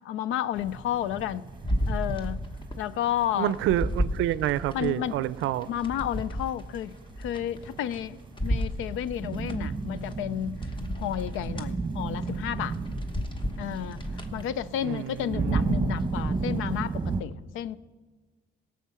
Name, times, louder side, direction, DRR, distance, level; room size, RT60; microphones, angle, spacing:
voice 1, 0.0-1.4 1.9-2.4 2.8-3.5 4.7-5.2 5.7-10.6 10.9-12.8 13.6-14.0 14.3-17.8, left 11 dB, 90° left, 0.5 m, -31 dB
sound 1, 0.5-17.2, right 4 dB, 25° right, 0.9 m, -34 dB
sound 2, 1.6-2.8 3.2-4.9 5.4-8.0 8.4-9.6 10.1-10.2 10.6-11.7 12.2-12.4 12.7-14.4 14.9-15.0, equal, 25° left, 1.1 m, -32 dB
voice 2, 3.4-5.7 14.8-15.8, right 13 dB, 85° right, 0.5 m, -28 dB
17.0 x 7.2 x 5.7 m
cardioid pair, 90°, 20 cm